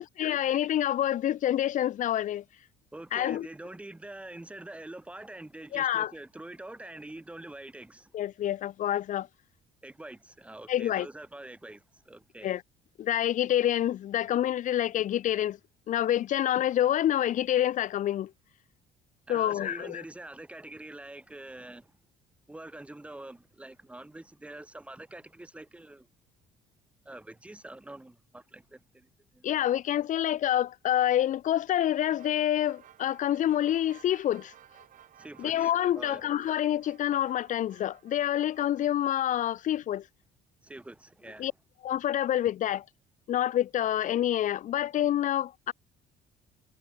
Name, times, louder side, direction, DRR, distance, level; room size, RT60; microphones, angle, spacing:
voice 1, 0.0-2.4 3.1-3.5 5.7-6.1 8.1-9.3 10.7-11.1 12.4-12.6 13.0-15.6 15.9-18.3 19.3-20.0 29.4-34.5 35.4-40.1 41.4-41.5 41.8-42.8 43.3-45.7, left 11 dB, 45° left, 0.8 m, -27 dB
voice 2, 2.9-8.1 9.8-12.5 19.3-21.9 22.5-26.1 27.0-29.8 35.2-35.7 36.0-36.2 40.6-41.5, right 1 dB, 5° right, 2.9 m, -45 dB
sound 1, 32.2-39.4, right 11 dB, 45° right, 4.0 m, -56 dB
cardioid pair, 160°, 18 cm